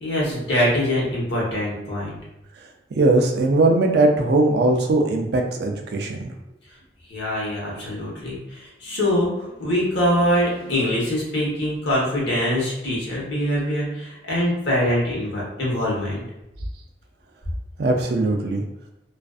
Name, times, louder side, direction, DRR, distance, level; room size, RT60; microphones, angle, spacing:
voice 1, 0.0-2.2 7.1-16.2, equal, 70° left, -5 dB, 0.9 m, -23 dB
voice 2, 2.9-6.3 17.8-18.6, right 2 dB, 60° right, 4 dB, 0.3 m, -20 dB
2.4 x 2.3 x 2.3 m, 0.89 s
head